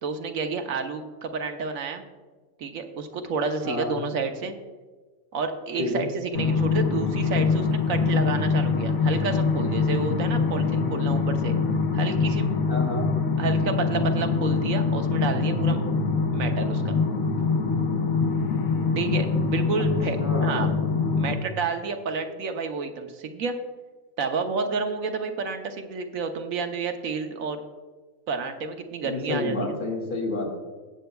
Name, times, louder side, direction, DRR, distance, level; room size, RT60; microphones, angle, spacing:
voice 1, 0.0-2.0 2.6-4.5 5.3-11.6 11.9-12.5 13.4-15.8 16.3-17.0 19.0-20.7 21.2-23.6 24.2-27.6 28.3-29.7, right 4 dB, 75° right, 6 dB, 1.2 m, -30 dB
voice 2, 3.6-4.1 5.8-6.1 12.7-13.1 20.2-20.7 29.0-30.5, left 2 dB, 35° left, -4 dB, 2.1 m, -29 dB
sound 1, 6.3-21.4, left 4 dB, 80° left, 1.4 m, -24 dB
18.0 x 8.0 x 2.3 m, 1.3 s
omnidirectional pair, 1.5 m